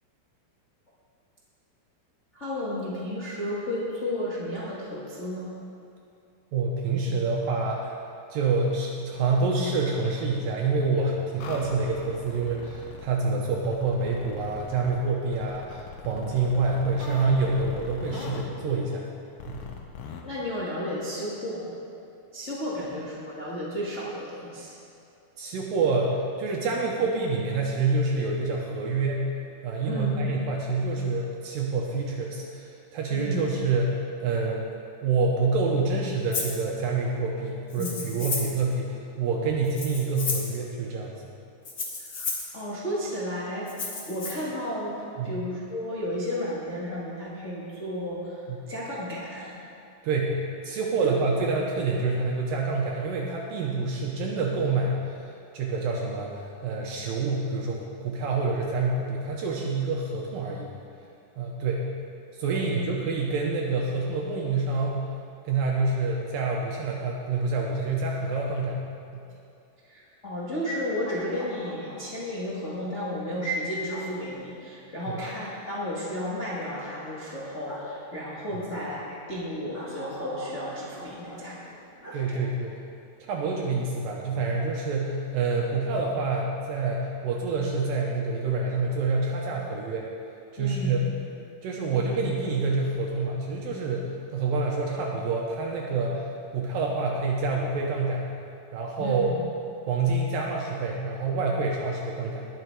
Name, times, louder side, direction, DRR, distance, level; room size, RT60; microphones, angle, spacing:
voice 1, 2.3-5.5 20.2-21.7 22.3-24.7 29.8-30.1 33.1-33.4 37.8-38.0 42.0-43.8 44.0-49.6 51.0-51.2 62.5-62.8 69.8-81.7 82.1-82.4 90.6-91.0 99.0-99.4, left 1 dB, 50° left, -8 dB, 0.8 m, -33 dB
voice 2, 6.5-8.0 8.3-19.1 19.5-19.6 22.8-22.9 25.4-29.2 29.6-33.9 34.2-34.7 35.0-41.2 45.2-45.4 48.5-48.6 50.0-50.4 50.6-55.2 55.5-60.7 61.4-61.8 62.3-65.0 65.4-68.8 69.1-69.2 75.1-75.2 78.5-78.6 82.1-82.7 83.3-90.1 90.5-91.0 91.6-98.3 98.7-99.3 99.9-102.5, right 3 dB, 75° right, -1 dB, 2.4 m, -27 dB
sound 1, 11.4-13.1 13.6-15.0 15.3-18.5 19.4-20.2, left 5 dB, 70° left, 2.0 m, -40 dB
Rattle (instrument), 36.3-36.6 37.7-38.6 39.6-40.6 41.6-42.5 43.7-44.3, left 3 dB, 85° left, 0.8 m, -32 dB
sound 2, 70.9-72.2 73.9-74.1 75.2-75.4 76.7-76.9 77.6-77.9 78.7-78.9 79.7-81.4 82.0-82.2 82.5-82.6, right 1 dB, 10° right, 0.9 m, -42 dB
20.0 x 6.8 x 4.7 m, 2.6 s
omnidirectional pair, 4.5 m